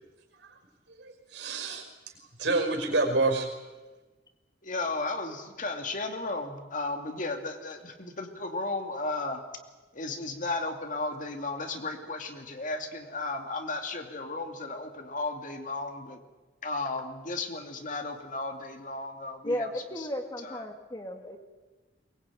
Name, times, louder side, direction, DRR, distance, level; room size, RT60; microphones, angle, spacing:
voice 1, 0.9-1.9 2.4-3.5, right 2 dB, 75° right, 4 dB, 5.2 m, -28 dB
voice 2, 4.6-9.4 9.9-16.2 16.6-19.7 20.0-20.1 20.4-20.7, left 3 dB, 45° left, 5 dB, 2.7 m, -34 dB
voice 3, 19.4-21.4, left 1 dB, 20° left, 5 dB, 2.2 m, -34 dB
22.5 x 21.5 x 9.1 m, 1.2 s
head